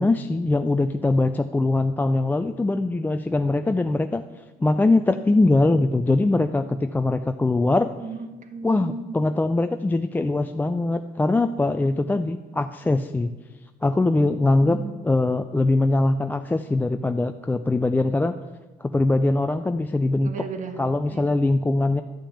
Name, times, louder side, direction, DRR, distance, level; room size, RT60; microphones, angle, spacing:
voice 1, 0.0-4.2 4.6-7.9 8.6-13.3 13.8-14.8 15.0-18.3 18.8-20.3 20.8-22.0, left 2 dB, 10° left, 7 dB, 0.4 m, -22 dB
voice 2, 8.0-9.2 14.6-15.0 20.2-20.8 21.1-21.3, right 4 dB, 50° right, 7 dB, 1.4 m, -35 dB
11.5 x 5.7 x 8.5 m, 1.2 s
cardioid pair, 110°, 17 cm